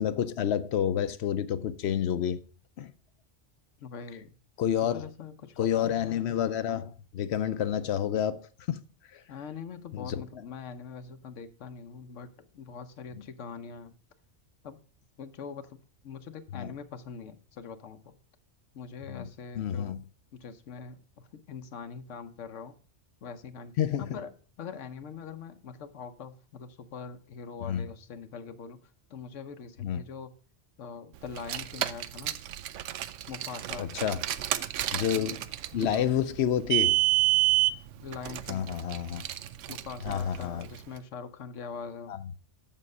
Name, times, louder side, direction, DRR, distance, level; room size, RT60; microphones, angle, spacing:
voice 1, 0.0-2.4 2.8-2.9 4.6-5.1 5.6-8.4 8.7-8.8 9.9-10.2 16.5-16.7 19.1-19.2 19.6-20.0 23.8-24.2 27.7-27.9 29.8-30.0 33.8-34.2 34.9-35.4 35.7-37.0 38.5-39.2 40.0-40.7 42.1-42.2, left 9 dB, 70° left, 0.8 m, -29 dB
voice 2, 3.8-4.3 4.9-6.3 9.3-14.0 14.6-14.8 15.2-15.8 16.0-18.1 18.7-20.0 20.3-22.7 23.2-24.3 24.6-28.8 29.1-30.3 30.8-32.4 33.3-33.9 35.1-35.3 35.7-36.1 38.0-38.7 39.7-42.1, left 6 dB, 90° left, 1.2 m, -43 dB
Car, 31.3-40.8, right 17 dB, 90° right, 0.9 m, -29 dB
7.3 x 7.3 x 5.4 m
omnidirectional pair, 1.2 m